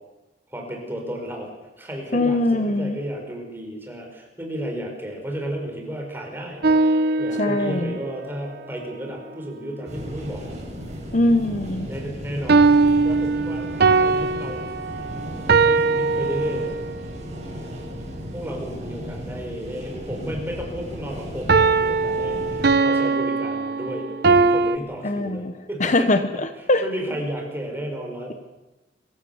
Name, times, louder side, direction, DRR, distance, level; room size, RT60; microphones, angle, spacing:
voice 1, 0.5-1.5 1.8-10.6 11.8-12.7 13.0-14.6 15.6-16.8 18.3-26.1 26.8-28.3, equal, 10° right, 1 dB, 5.5 m, -33 dB
voice 2, 2.1-3.0 7.4-8.0 11.1-11.9 25.0-25.5 25.8-26.2 26.7-26.8, left 2 dB, 45° left, 9 dB, 1.1 m, -21 dB
sound 1, 6.6-8.0 12.5-17.0 21.5-24.8, right 4 dB, 60° right, 0.9 m, -20 dB
sound 2, 9.8-22.7, equal, 40° right, 7.0 m, -35 dB
25.5 x 16.5 x 7.3 m, 1.1 s
head